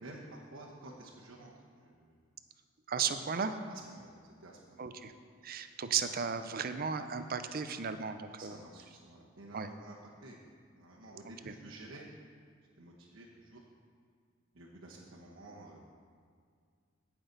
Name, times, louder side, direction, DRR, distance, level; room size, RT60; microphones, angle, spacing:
voice 1, 0.0-2.1 3.7-4.8 8.4-10.0 10.2-10.4 10.7-12.1 12.8-13.6 14.5-15.8, right 2 dB, 75° right, -4 dB, 1.1 m, -51 dB
voice 2, 2.9-3.6 4.8-5.1 5.4-8.6 9.5-9.7 11.4-11.5, right 6 dB, 45° right, 9 dB, 0.5 m, -35 dB
16.5 x 6.0 x 4.0 m, 2.1 s
head